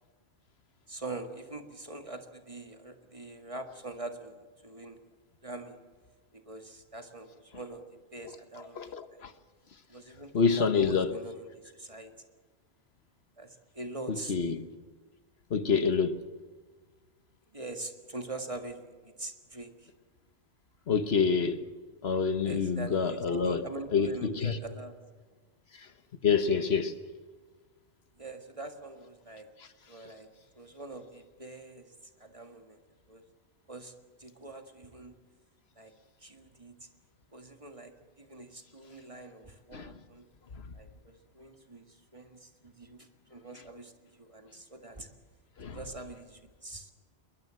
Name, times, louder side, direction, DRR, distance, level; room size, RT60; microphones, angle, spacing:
voice 1, 0.9-5.0 5.4-5.8 6.3-7.8 8.1-9.2 9.9-12.1 13.4-14.3 17.5-19.9 22.5-24.9 28.2-29.5 29.9-30.3 30.6-31.9 32.2-32.8 33.1-33.2 33.7-33.9 34.2-35.2 35.8-35.9 36.2-36.9 37.3-40.2 40.7-45.1 45.7-46.9, right 2 dB, 30° right, 1.9 m, -44 dB
voice 2, 8.7-9.3 10.3-11.2 14.1-14.6 15.5-16.3 20.9-21.6 22.0-24.6 25.7-25.9 26.2-27.0 29.6-29.7 39.7-40.0 40.5-40.6 45.6-45.8, left 5 dB, 70° left, 1.4 m, -27 dB
22.0 x 21.0 x 7.7 m
omnidirectional pair, 1.1 m